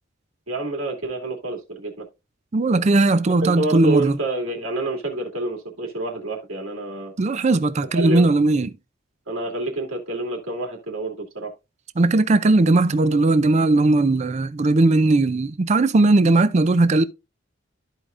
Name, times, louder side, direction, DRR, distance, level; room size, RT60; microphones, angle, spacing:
voice 1, 0.5-2.1 3.4-7.1 7.9-8.3 9.3-11.5, right 2 dB, 85° right, 2.5 m, -28 dB
voice 2, 2.5-4.2 7.2-8.7 12.0-17.0, right 2 dB, 35° right, 0.4 m, -18 dB
13.0 x 4.8 x 2.5 m
head